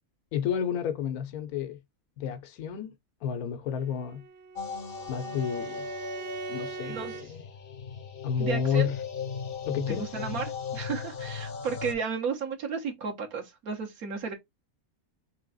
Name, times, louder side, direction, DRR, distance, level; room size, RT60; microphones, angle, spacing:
voice 1, 0.3-1.8 2.2-2.9 3.2-4.2 5.1-5.9 6.5-7.4 8.2-8.9 9.7-10.1, left 8 dB, 80° left, 1.3 m, -31 dB
Bowed string instrument, 3.7-7.3, right 5 dB, 55° right, 0.9 m, -42 dB
sound 1, 4.6-11.9, left 5 dB, 50° left, 0.8 m, -37 dB
voice 2, 6.8-7.3 8.4-8.9 9.9-14.3, right 6 dB, 70° right, 1.5 m, -33 dB
3.8 x 3.4 x 3.8 m
omnidirectional pair, 1.6 m